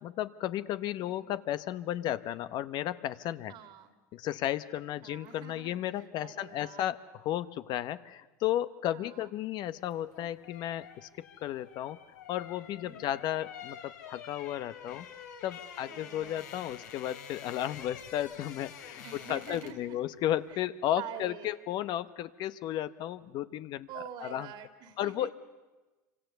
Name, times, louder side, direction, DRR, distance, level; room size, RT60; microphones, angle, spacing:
voice 1, 0.0-3.6 4.1-12.0 12.3-15.1 15.4-24.5 25.0-25.3, left 12 dB, 50° left, 13 dB, 0.9 m, -34 dB
voice 2, 1.0-1.3 3.5-4.0 5.0-5.7 6.2-6.8 8.9-9.3 12.8-13.2 15.9-16.5 19.0-20.0 20.5-20.6 21.0-21.6 23.9-25.3, right 9 dB, 55° right, 8 dB, 2.5 m, -46 dB
sound 1, 9.9-19.9 20.2-20.4, left 8 dB, 85° left, 2.9 m, -48 dB
27.0 x 25.0 x 6.9 m, 1.2 s
hypercardioid pair, 95°, 9 cm